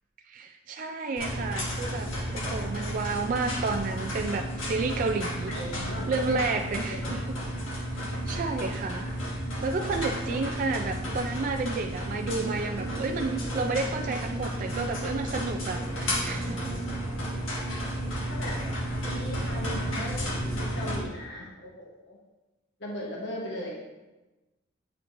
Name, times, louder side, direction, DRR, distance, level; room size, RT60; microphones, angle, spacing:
voice 1, 0.3-5.5 6.1-7.4 7.7-9.2 9.6-16.7, right 3 dB, 45° right, 4 dB, 0.3 m, -31 dB
sound 1, 1.2-21.0, equal, 80° left, 1.4 m, -32 dB
voice 2, 5.4-7.2 17.9-18.6 19.0-22.2 22.8-23.8, left 1 dB, 60° left, -2 dB, 1.0 m, -39 dB
sound 2, 12.3-17.8, right 2 dB, 25° right, 0.8 m, -40 dB
8.6 x 4.4 x 2.6 m, 1.1 s
head